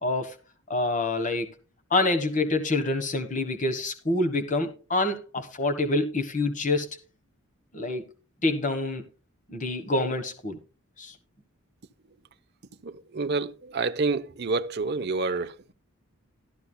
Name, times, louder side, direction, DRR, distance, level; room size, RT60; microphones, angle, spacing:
voice 1, 0.0-0.3 0.7-1.5 1.9-7.0 7.7-8.0 8.4-9.0 9.5-10.6 11.0-11.1, left 2 dB, 35° left, 1.3 m, -26 dB
voice 2, 12.8-15.7, right 3 dB, 50° right, 0.7 m, -28 dB
14.0 x 13.0 x 2.2 m
head